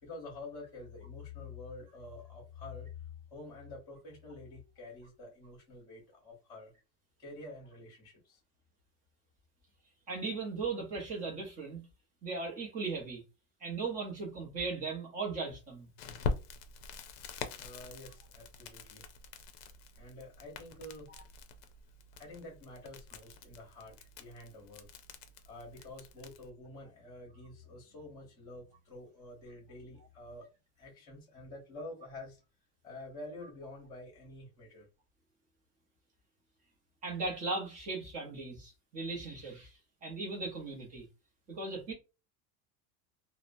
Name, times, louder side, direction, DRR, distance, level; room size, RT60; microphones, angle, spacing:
voice 1, 0.0-3.0 3.3-6.7 7.2-8.4 17.6-19.1 19.9-21.1 22.1-24.9 25.4-30.5 30.8-32.4 32.8-34.9, left 2 dB, 10° left, 1.0 m, -48 dB
voice 2, 10.1-11.8 12.2-13.2 13.6-15.9 37.0-39.7 40.0-41.1 41.5-41.9, right 3 dB, 25° right, 0.8 m, -37 dB
Crackle, 16.0-26.5, left 4 dB, 60° left, 0.6 m, -44 dB
2.8 x 2.1 x 2.5 m
cardioid pair, 180°, 35 cm